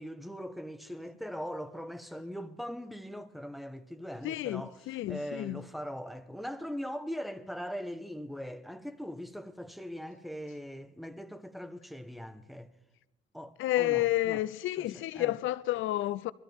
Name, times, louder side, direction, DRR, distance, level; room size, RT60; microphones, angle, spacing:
voice 1, 0.0-4.8 5.1-12.7 13.3-14.4 14.8-15.4, equal, ahead, 1.2 m, -41 dB
voice 2, 4.2-5.6 13.6-16.3, left 15 dB, 85° left, 0.5 m, -30 dB
22.5 x 13.5 x 3.6 m
cardioid pair, 90°, 20 cm